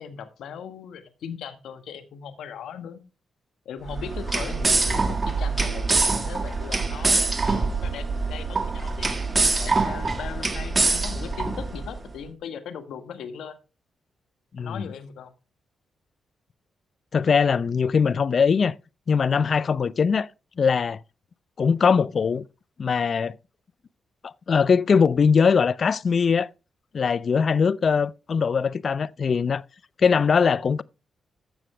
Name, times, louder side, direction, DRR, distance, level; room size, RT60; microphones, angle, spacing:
voice 1, 0.0-3.0 3.6-9.1 9.6-13.6 14.6-15.3, left 7 dB, 75° left, 1.4 m, -38 dB
sound 1, 3.9-12.0, right 3 dB, 30° right, 1.8 m, -24 dB
voice 2, 14.5-14.9 17.1-18.7 19.1-20.3 20.6-21.0 21.6-22.4 22.8-23.4 24.2-26.5 26.9-29.6 30.0-30.8, left 6 dB, 55° left, 0.5 m, -21 dB
14.0 x 6.1 x 3.2 m
supercardioid pair, 50°, 0 cm